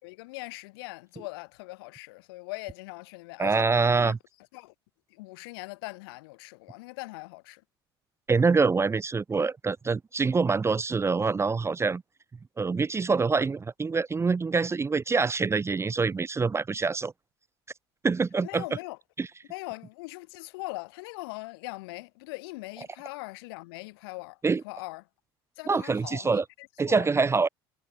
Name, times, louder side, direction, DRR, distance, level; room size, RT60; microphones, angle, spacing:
voice 1, 0.0-3.7 3.9-4.1 4.5-4.7 5.1-7.6 18.4-19.0 19.5-25.0 25.6-27.1, left 24 dB, 75° left, 6.4 m, -41 dB
voice 2, 3.4-4.2 8.3-12.0 12.6-17.1 18.0-18.6 19.2-19.3 24.4-24.6 25.7-26.4 26.8-27.5, right 4 dB, 20° right, 0.7 m, -25 dB
hypercardioid pair, 65°, 13 cm